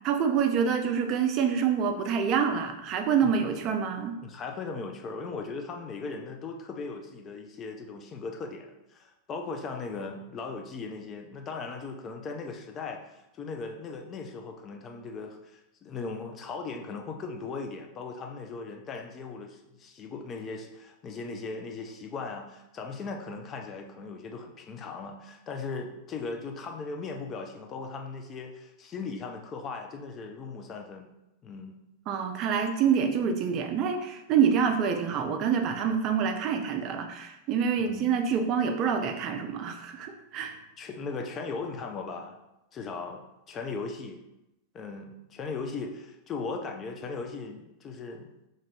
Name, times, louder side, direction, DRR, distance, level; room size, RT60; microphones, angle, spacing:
voice 1, 0.0-4.2 32.1-40.6, right 7 dB, 35° right, 5 dB, 0.4 m, -26 dB
voice 2, 4.2-31.1 31.4-31.8 37.9-38.1 40.8-42.4 42.7-44.2 44.7-48.3, left 4 dB, 30° left, 3 dB, 0.4 m, -38 dB
2.5 x 2.5 x 3.2 m, 0.92 s
figure-of-eight pair, 90°, 0 cm